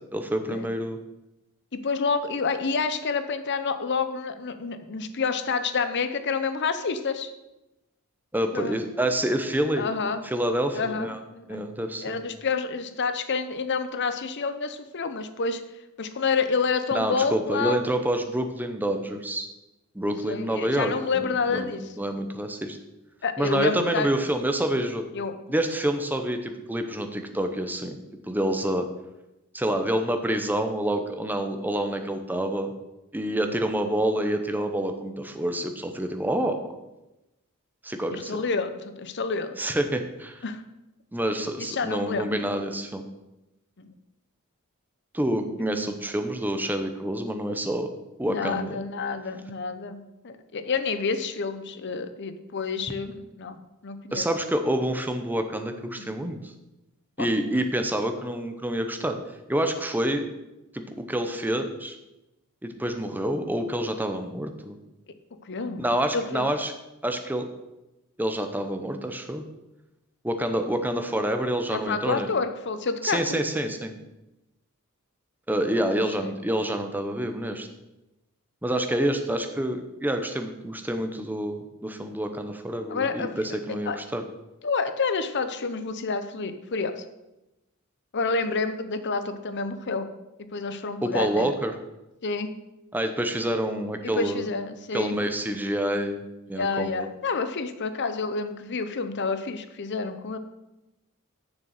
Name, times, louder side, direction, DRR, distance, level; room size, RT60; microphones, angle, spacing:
voice 1, 0.1-1.0 8.3-9.9 10.2-11.2 11.5-12.2 16.9-19.5 19.9-22.8 23.4-25.0 25.5-28.0 28.3-28.9 29.5-32.7 33.1-36.6 37.8-38.4 39.6-40.4 41.1-43.1 45.1-47.9 48.2-48.8 54.1-56.5 57.2-59.2 59.5-60.2 60.7-60.8 61.1-62.0 62.6-64.8 65.8-66.7 67.0-67.5 68.2-69.4 70.2-72.3 73.0-74.0 75.5-77.7 78.6-84.2 91.0-91.7 92.9-94.5 94.9-96.2 96.5-97.1, right 1 dB, 10° right, 6 dB, 0.8 m, -27 dB
voice 2, 1.7-7.3 8.5-8.8 9.8-10.2 10.7-11.6 12.0-15.6 16.0-17.8 20.0-21.8 23.2-24.1 25.1-25.3 38.1-39.6 40.4-40.6 41.6-42.4 43.8-43.9 48.3-54.3 55.9-56.1 57.2-57.3 65.5-65.8 66.1-66.5 71.7-73.4 76.0-76.3 82.9-84.0 84.6-87.0 88.1-90.1 90.5-91.5 92.2-92.5 94.0-95.2 96.6-100.4, left 4 dB, 55° left, 10 dB, 0.7 m, -29 dB
7.0 x 6.7 x 6.5 m, 0.97 s
head